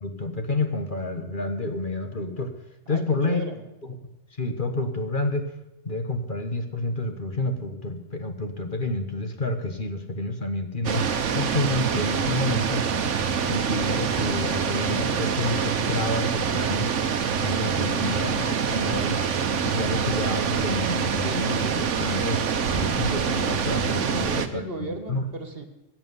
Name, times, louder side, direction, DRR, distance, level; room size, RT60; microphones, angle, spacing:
voice 1, 0.0-2.5 2.9-3.5 3.8-3.9 4.4-5.5 5.8-11.1 11.3-12.9 13.4-16.9 17.4-19.2 19.6-24.6 25.1-25.2, left 2 dB, 40° left, 6 dB, 1.5 m, -29 dB
voice 2, 2.9-3.6 17.7-18.1 24.0-25.6, right 2 dB, 50° right, 7 dB, 1.9 m, -36 dB
sound 1, 10.8-24.5, right 6 dB, 70° right, 1.3 m, -25 dB
16.0 x 7.6 x 9.6 m, 0.95 s
omnidirectional pair, 1.3 m